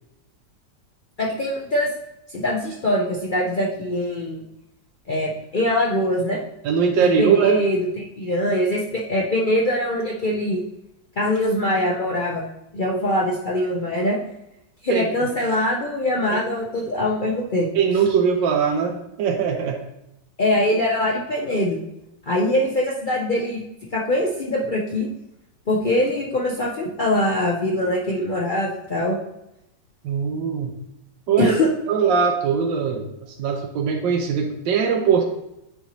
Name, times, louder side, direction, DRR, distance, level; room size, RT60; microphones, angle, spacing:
voice 1, 1.2-1.9 2.3-4.4 5.1-6.4 7.0-10.6 11.2-12.4 12.7-14.2 14.8-17.7 20.4-21.8 22.3-23.6 23.9-25.1 25.7-29.2 31.4-31.7, left 1 dB, 70° left, -3 dB, 0.4 m, -23 dB
voice 2, 6.6-7.6 14.9-15.0 16.3-16.4 17.7-19.8 30.0-30.7 31.3-31.5 31.9-33.1 33.4-35.2, right 6 dB, 90° right, 2 dB, 1.4 m, -21 dB
9.0 x 4.1 x 3.0 m, 0.86 s
omnidirectional pair, 2.0 m